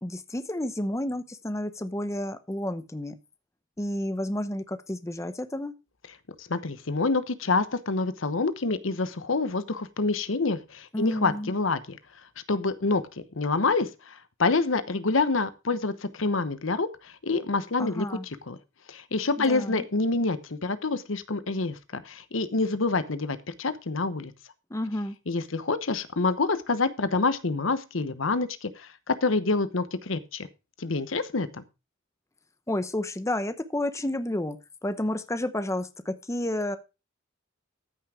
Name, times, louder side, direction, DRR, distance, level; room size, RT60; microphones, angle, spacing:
voice 1, 0.0-3.2 3.8-5.7 10.9-11.5 17.8-18.3 19.4-19.8 24.7-25.2 32.7-34.6 34.8-36.8, left 1 dB, 15° left, 10 dB, 0.8 m, -31 dB
voice 2, 6.4-12.0 12.5-13.0 13.3-18.0 18.5-18.6 18.9-24.3 25.3-30.5 30.8-31.6, left 3 dB, 80° left, 13 dB, 1.0 m, -27 dB
14.0 x 6.1 x 4.8 m, 0.28 s
head